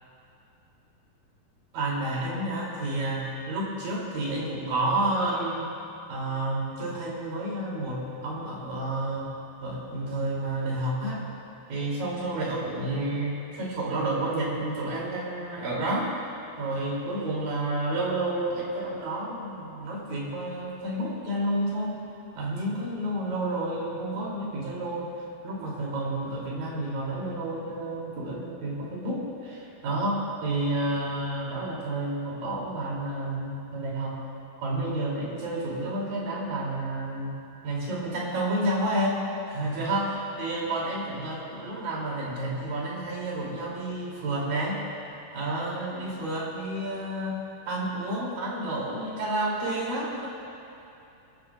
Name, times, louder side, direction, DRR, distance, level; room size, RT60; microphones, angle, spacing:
voice 1, 1.7-5.7 6.1-9.3 9.6-11.3 11.7-16.1 16.6-22.0 22.4-25.1 25.4-34.2 34.6-37.4 37.6-44.8 45.3-47.4 47.7-50.3, right 1 dB, 65° right, -5 dB, 4.6 m, -30 dB
25.5 x 13.0 x 2.4 m, 2.8 s
omnidirectional pair, 4.4 m